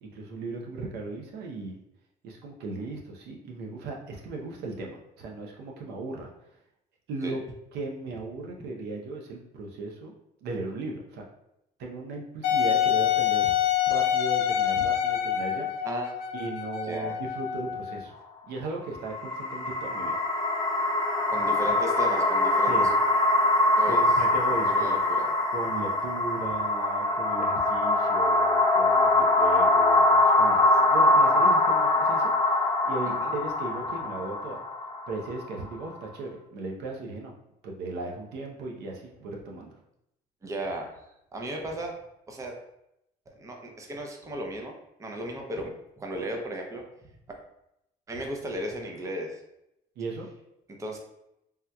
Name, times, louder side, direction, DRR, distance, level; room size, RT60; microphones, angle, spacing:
voice 1, 0.0-1.8 2.2-6.3 7.1-7.4 7.7-10.1 10.4-11.2 11.8-13.5 13.9-15.9 16.3-18.1 18.5-20.2 22.7-22.9 23.8-25.0 25.5-34.6 35.1-37.3 37.6-39.7 50.0-50.3, right 3 dB, 80° right, 0 dB, 0.6 m, -37 dB
Wind instrument woodwind instrument, 12.4-18.1, left 10 dB, 70° left, 0.5 m, -26 dB
voice 2, 15.8-16.1 16.9-17.2 21.3-22.9 23.8-24.2 24.6-25.3 33.1-33.3 40.4-40.9 41.3-41.9 42.3-42.5 43.4-44.7 45.0-45.7 46.0-46.8 48.1-49.4 50.8-51.0, right 1 dB, 20° right, 2 dB, 0.5 m, -35 dB
sound 1, 18.9-36.1, left 2 dB, 20° left, 0.7 m, -23 dB
3.4 x 2.8 x 2.2 m, 0.82 s
cardioid pair, 110°, 17 cm